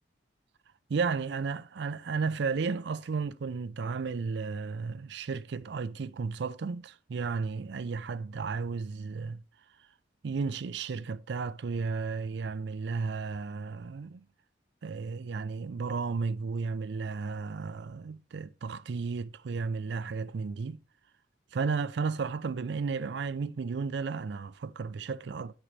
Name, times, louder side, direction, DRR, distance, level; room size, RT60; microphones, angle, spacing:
voice 1, 0.9-9.4 10.2-14.2 14.8-20.8 21.5-25.5, right 5 dB, 60° right, 0.4 m, -33 dB
9.6 x 6.2 x 3.9 m
head